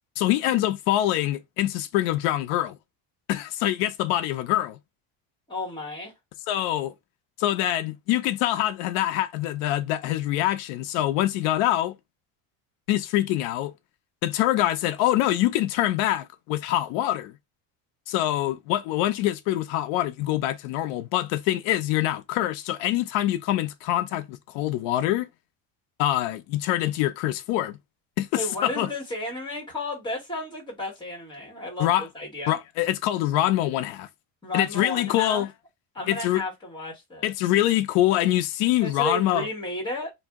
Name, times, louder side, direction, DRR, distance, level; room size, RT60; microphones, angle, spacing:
voice 1, 0.2-2.8 3.3-4.8 6.5-6.9 7.4-11.9 12.9-13.7 14.2-17.3 18.1-25.3 26.0-27.8 28.2-28.9 31.8-32.1 32.5-34.1 34.5-35.5 36.1-36.4 37.2-39.5, left 14 dB, 85° left, 0.6 m, -25 dB
voice 2, 5.5-6.1 28.3-32.6 34.4-35.4 35.9-37.3 38.8-40.1, left 1 dB, 10° left, 1.1 m, -33 dB
2.6 x 2.0 x 3.5 m
cardioid pair, 165°, 44 cm